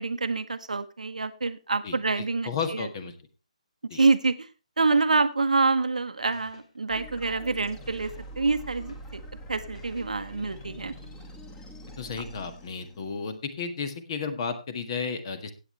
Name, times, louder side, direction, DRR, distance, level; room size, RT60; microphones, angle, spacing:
voice 1, 0.0-2.9 3.9-4.5 4.8-9.2 9.5-10.9, right 3 dB, 80° right, 10 dB, 0.9 m, -26 dB
voice 2, 1.8-3.1 3.9-4.0 12.0-15.5, left 5 dB, 40° left, 9 dB, 1.7 m, -33 dB
sound 1, 6.3-9.3 9.7-11.1, left 3 dB, 65° left, 3.0 m, -55 dB
sound 2, 6.9-13.4, equal, 15° left, 1.9 m, -44 dB
16.0 x 8.9 x 3.2 m, 0.29 s
figure-of-eight pair, 145°, 4 cm